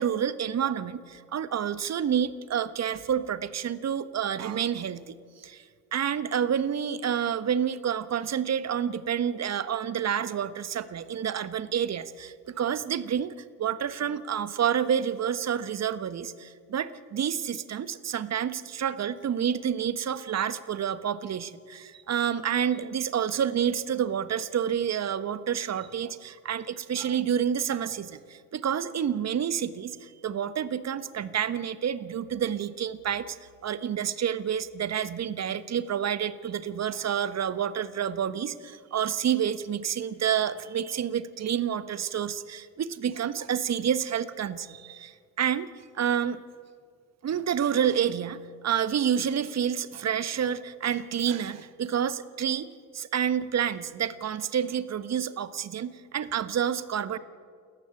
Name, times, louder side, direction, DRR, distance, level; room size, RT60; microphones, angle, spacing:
voice 1, 0.0-5.6 5.9-33.4 33.6-46.4 47.2-57.2, right 8 dB, 35° right, 13 dB, 1.4 m, -29 dB
29.5 x 14.0 x 9.1 m, 2.1 s
figure-of-eight pair, 55°, 43 cm